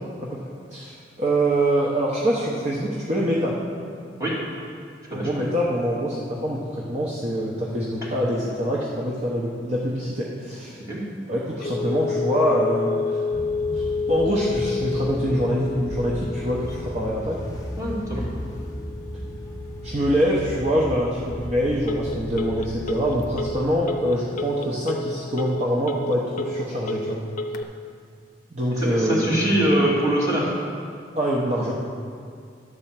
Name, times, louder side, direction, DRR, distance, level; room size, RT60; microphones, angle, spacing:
voice 1, 0.0-3.6 5.1-10.8 11.3-13.2 13.7-17.4 19.8-27.2 28.5-29.4 31.1-31.7, equal, 40° right, -5 dB, 0.9 m, -25 dB
voice 2, 5.1-5.4 10.9-11.0 17.8-18.2 28.8-30.5, right 1 dB, 20° right, -7 dB, 2.5 m, -23 dB
Telephone, 11.6-27.6, left 3 dB, 50° left, 0.6 m, -30 dB
sound 1, 13.3-23.6, equal, 20° left, 1.0 m, -35 dB
11.5 x 4.4 x 7.4 m, 2.3 s
head